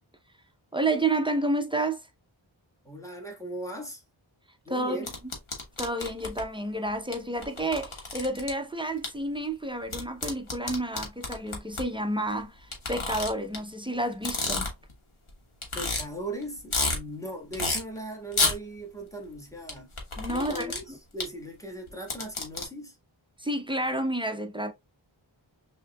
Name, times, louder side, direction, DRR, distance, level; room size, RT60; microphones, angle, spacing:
voice 1, 0.7-2.1 4.7-5.0 5.8-14.7 20.2-20.7 23.4-24.7, right 1 dB, 10° right, 0.6 m, -30 dB
voice 2, 2.8-4.0 4.6-5.1 15.7-19.9 20.3-23.0, right 1 dB, 5° left, 1.5 m, -38 dB
sound 1, 5.0-6.4 7.1-7.2 7.4-8.5 9.0-9.1 9.9-11.8 12.7-13.6 14.1-14.9 15.3-15.4 15.6-16.0 16.4-17.0 17.5-17.8 18.3-18.6 19.7-20.8 21.2-21.3 21.9-22.6, left 3 dB, 80° left, 1.5 m, -29 dB
6.1 x 2.9 x 2.3 m
wide cardioid pair, 55°, 48 cm